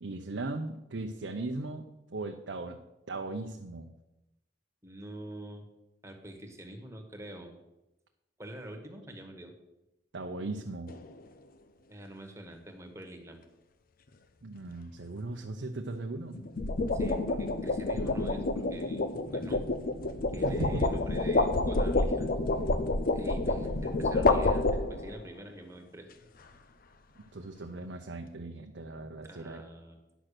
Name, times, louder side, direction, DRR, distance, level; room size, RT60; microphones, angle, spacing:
voice 1, 0.0-2.8 3.1-3.9 10.1-10.9 14.4-16.4 20.4-20.8 27.3-29.6, right 2 dB, 80° right, 3 dB, 0.7 m, -38 dB
voice 2, 4.8-5.6 6.0-7.6 8.4-9.5 11.9-13.4 16.9-19.6 20.3-22.3 23.1-26.1 29.1-30.1, right 1 dB, 15° right, 4 dB, 1.5 m, -45 dB
sound 1, 10.9-11.2 16.3-25.2, left 2 dB, 50° left, 0.6 m, -28 dB
10.0 x 6.0 x 6.6 m, 0.95 s
head